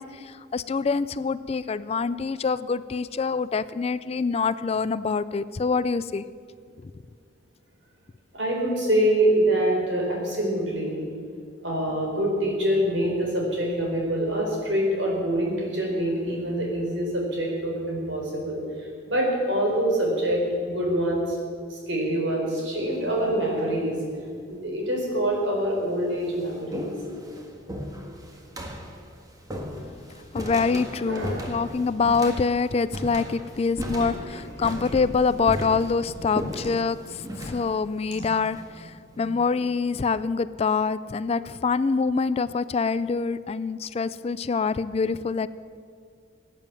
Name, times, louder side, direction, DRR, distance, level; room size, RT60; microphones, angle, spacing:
voice 1, 0.0-6.2 6.8-6.9 29.8-30.0 30.3-45.5, left 4 dB, 30° left, 15 dB, 0.3 m, -25 dB
voice 2, 8.3-11.0 11.6-21.4 21.7-24.0 24.5-26.9 31.1-31.5 34.0-34.4 35.6-35.7 38.1-38.3 39.1-39.2, right 1 dB, 70° right, -1 dB, 4.6 m, -25 dB
sound 1, 22.9-23.4 24.3-24.4 25.3-25.4 25.7-39.3, equal, 20° right, 1.6 m, -37 dB
17.0 x 9.4 x 7.6 m, 2.2 s
head